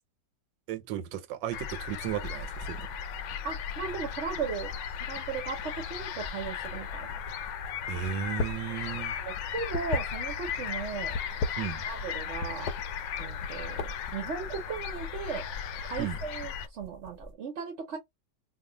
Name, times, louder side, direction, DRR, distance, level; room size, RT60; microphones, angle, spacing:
voice 1, 0.7-2.9 7.9-9.2 11.6-11.8 16.0-16.2, right 10 dB, 90° right, 1.3 m, -35 dB
sound 1, 1.5-16.7, left 7 dB, 90° left, 1.3 m, -36 dB
sound 2, 2.0-17.3, equal, 25° right, 0.7 m, -50 dB
voice 2, 3.4-4.7 5.0-7.2 8.5-8.6 8.9-11.2 11.8-12.7 13.2-15.4 15.8-18.0, right 6 dB, 55° right, 0.9 m, -37 dB
sound 3, 8.3-8.7 9.0-10.6 11.1-12.1 12.4-12.8 13.3-14.1, left 3 dB, 70° left, 1.0 m, -33 dB
2.8 x 2.3 x 3.8 m
omnidirectional pair, 1.9 m